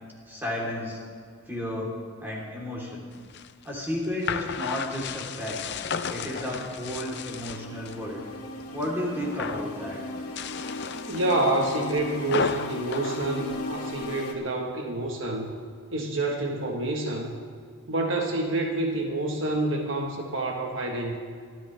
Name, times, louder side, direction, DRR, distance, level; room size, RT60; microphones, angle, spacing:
voice 1, 0.3-1.0 1.5-1.9 2.2-3.0 3.6-5.6 6.0-8.2 8.7-10.0, left 1 dB, 10° right, -4 dB, 3.4 m, -32 dB
sound 1, 3.1-8.0 8.4-8.9 9.2-9.7 10.2-14.1, left 6 dB, 50° left, 0.6 m, -34 dB
sound 2, 5.6-14.3, left 1 dB, 85° left, 2.2 m, -38 dB
voice 2, 11.1-15.5 15.9-17.4 17.9-21.2, right 2 dB, 55° right, 1 dB, 1.4 m, -28 dB
25.0 x 13.0 x 3.4 m, 2.1 s
head